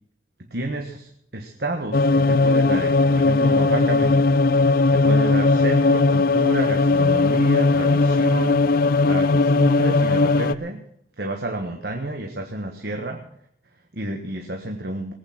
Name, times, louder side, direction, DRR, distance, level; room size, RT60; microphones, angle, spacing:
voice 1, 0.5-10.8 11.2-13.2 13.7-15.1, right 2 dB, 55° right, 3 dB, 1.5 m, -30 dB
Scary engine, 1.9-10.6, left 3 dB, 50° left, 0.4 m, -18 dB
20.0 x 8.8 x 5.9 m, 0.73 s
head